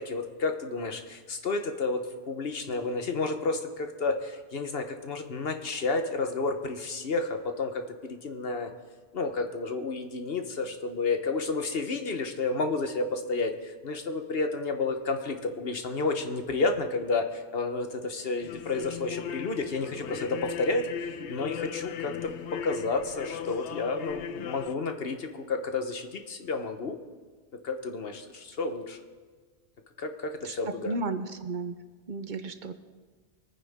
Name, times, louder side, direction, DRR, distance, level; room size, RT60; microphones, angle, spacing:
voice 1, 0.0-8.7 9.1-20.9 21.3-27.0 27.6-29.0 30.0-31.0, left 3 dB, 60° left, 6 dB, 1.3 m, -31 dB
sound 1, 18.4-24.8, left 8 dB, 80° left, 0.9 m, -38 dB
voice 2, 30.8-31.8 32.1-32.7, right 3 dB, 50° right, 10 dB, 0.8 m, -33 dB
24.0 x 9.6 x 3.6 m, 1.5 s
omnidirectional pair, 1.2 m